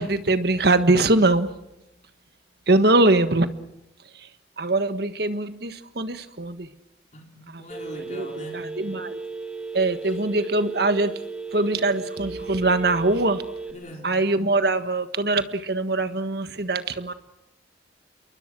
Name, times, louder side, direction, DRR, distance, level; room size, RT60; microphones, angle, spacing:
voice 1, 0.0-1.5 2.7-3.5 4.6-6.7 7.5-7.6 8.1-9.2 9.7-13.4 14.0-17.1, right 2 dB, 55° right, 1.5 m, -22 dB
voice 2, 7.1-8.7 13.7-14.1, equal, 40° left, 3.8 m, -41 dB
Telephone, 7.7-13.7, right 4 dB, 5° right, 2.6 m, -35 dB
29.0 x 22.5 x 6.2 m
head